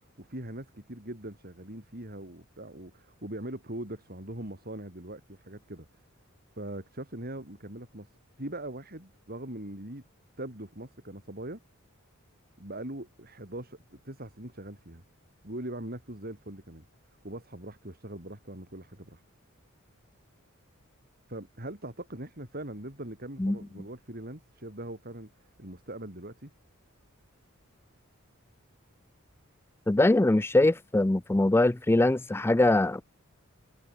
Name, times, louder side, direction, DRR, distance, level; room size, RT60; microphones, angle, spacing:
voice 1, 0.2-5.9 6.6-8.1 8.4-10.0 10.4-11.6 12.6-15.0 15.4-16.8 17.2-19.2 21.3-25.3 25.6-26.5, right 1 dB, 45° right, 6.3 m, -41 dB
voice 2, 29.9-33.0, left 2 dB, 10° left, 0.4 m, -22 dB
head